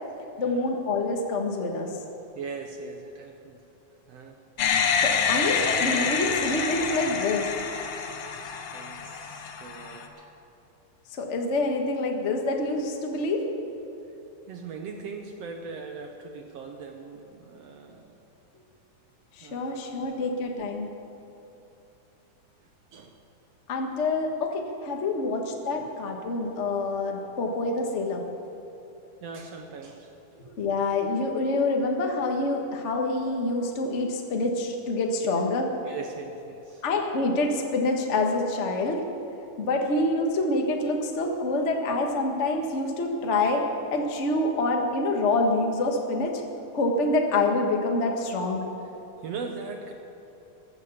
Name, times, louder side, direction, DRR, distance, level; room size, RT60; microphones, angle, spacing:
voice 1, 0.4-1.9 5.0-7.5 11.1-13.4 19.4-20.9 23.7-28.2 30.5-35.7 36.8-39.0 39.6-43.6 43.9-46.3 46.7-48.7, left 2 dB, 50° left, 2 dB, 0.8 m, -26 dB
voice 2, 2.3-3.6 4.1-4.4 4.7-5.0 8.7-10.4 14.5-18.2 19.4-20.4 22.6-23.2 25.8-25.9 29.2-30.1 35.4-35.5 35.8-36.8 39.8-39.9 49.2-49.9, right 4 dB, 70° right, 4 dB, 1.7 m, -40 dB
sound 1, 4.6-10.1, left 6 dB, 65° left, 1.4 m, -27 dB
15.0 x 11.0 x 7.1 m, 2.9 s
omnidirectional pair, 3.6 m